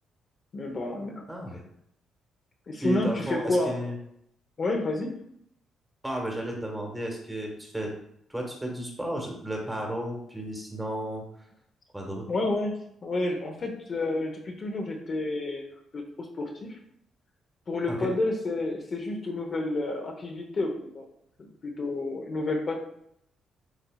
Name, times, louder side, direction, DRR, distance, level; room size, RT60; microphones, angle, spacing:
voice 1, 0.5-1.2 2.7-3.8 4.6-5.2 12.3-15.6 15.9-16.0 16.4-16.8 17.7-21.1 21.6-22.8, left 2 dB, 45° left, 2 dB, 0.7 m, -30 dB
voice 2, 1.3-1.6 2.8-4.0 6.0-7.9 8.3-11.2 11.9-12.2 17.9-18.1, right 1 dB, 10° right, 0 dB, 1.2 m, -33 dB
8.1 x 2.7 x 2.3 m, 0.71 s
cardioid pair, 90°, 0 cm